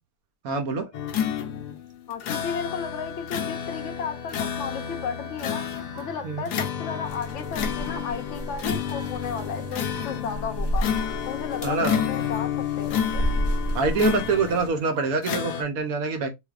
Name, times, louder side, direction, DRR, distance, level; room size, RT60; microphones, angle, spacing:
voice 1, 0.4-0.9 6.2-6.5 11.6-12.1 13.7-16.3, right 4 dB, 65° right, 1.1 m, -25 dB
sound 1, 0.9-14.8 15.2-15.6, left 8 dB, 80° left, 1.2 m, -30 dB
voice 2, 2.1-5.6 6.0-10.9 11.3-12.5 12.8-13.2, left 6 dB, 60° left, 0.9 m, -34 dB
sound 2, 6.0-6.1 7.0-7.1 8.0-8.1 9.0-9.1 10.0-10.1 11.0-11.1 12.0-12.1 13.0-13.1 14.0-14.1 15.0-15.1, right 11 dB, 85° right, 1.2 m, -43 dB
sound 3, 7.0-14.7, equal, 20° left, 0.8 m, -32 dB
3.4 x 3.1 x 2.4 m
omnidirectional pair, 1.7 m